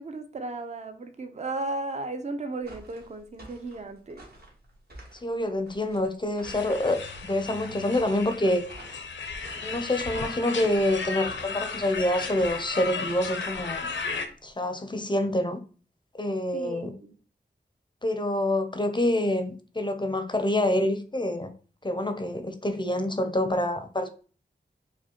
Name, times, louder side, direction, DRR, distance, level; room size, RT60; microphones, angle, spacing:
voice 1, 0.0-4.3 16.5-17.2, right 2 dB, 35° right, 8 dB, 0.5 m, -35 dB
sound 1, 2.6-14.6, right 1 dB, 55° right, 1.2 m, -50 dB
voice 2, 5.2-8.6 9.6-13.9 14.4-15.6 16.1-16.9 18.0-21.5 21.8-24.1, left 1 dB, 25° left, 7 dB, 0.5 m, -27 dB
sound 2, 6.4-14.3, left 4 dB, 80° left, 0.5 m, -35 dB
4.9 x 2.1 x 2.8 m, 0.39 s
wide cardioid pair, 60°, 19 cm